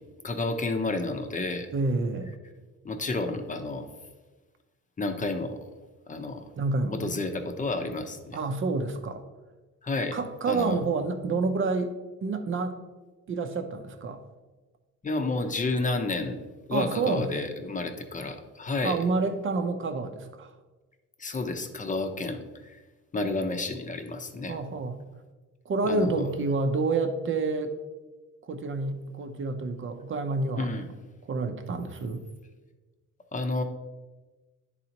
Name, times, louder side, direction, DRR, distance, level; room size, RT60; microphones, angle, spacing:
voice 1, 0.2-1.7 2.8-3.9 5.0-5.7 6.1-6.4 6.9-8.4 9.8-10.2 10.4-10.8 15.0-19.0 21.2-22.8 23.1-24.6 25.9-26.2 30.5-30.9 33.3-33.6, left 2 dB, 25° left, 6 dB, 0.8 m, -31 dB
voice 2, 1.7-2.3 6.6-7.0 8.3-9.2 10.1-11.9 12.2-12.8 13.3-14.2 16.7-17.3 18.8-20.5 24.5-25.0 25.7-27.7 28.5-30.7 31.3-32.2, right 3 dB, 40° right, 7 dB, 0.7 m, -28 dB
10.5 x 4.0 x 2.9 m, 1.2 s
cardioid pair, 90°, 30 cm